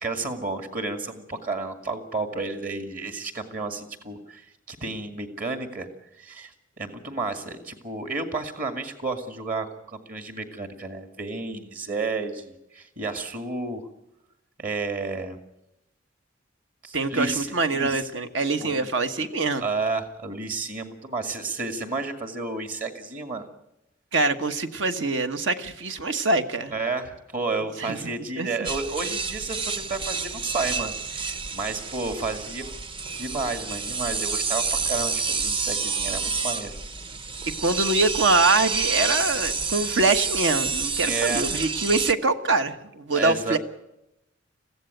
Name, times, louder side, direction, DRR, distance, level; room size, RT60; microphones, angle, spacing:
voice 1, 0.0-5.9 6.2-13.9 14.6-15.4 16.8-18.3 18.6-18.9 19.2-19.3 19.6-23.4 26.7-32.6 33.2-36.8 41.0-41.6 43.1-43.6, right 3 dB, 45° right, 7 dB, 2.1 m, -31 dB
voice 2, 16.9-19.6 24.1-26.7 27.8-28.0 28.4-28.5 37.6-43.6, right 3 dB, 75° right, 8 dB, 1.4 m, -24 dB
sound 1, 28.6-42.1, right 4 dB, 25° right, 0.8 m, -29 dB
22.5 x 15.5 x 9.2 m, 0.89 s
head